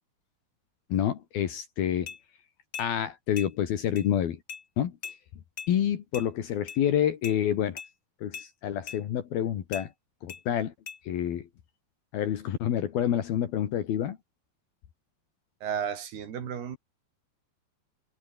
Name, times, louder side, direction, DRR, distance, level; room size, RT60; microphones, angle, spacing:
voice 1, 0.9-2.1 2.8-4.4 4.8-4.9 5.7-7.8 8.2-9.9 10.2-10.7 11.0-11.5 12.1-14.2, left 10 dB, 70° left, 3.8 m, -28 dB
sound 1, 2.1-2.2 2.7-2.9 3.4-3.5 4.0-4.1 4.5-4.6 5.0-5.2 5.6-5.7 6.1-6.3 6.7-6.8 7.2-7.4 7.8-7.9 8.3-8.5 8.9-9.0 9.7-9.9 10.3-10.4 10.9-11.0, left 6 dB, 40° left, 1.8 m, -39 dB
voice 2, 15.6-16.8, right 8 dB, 80° right, 5.2 m, -33 dB
omnidirectional pair, 4.5 m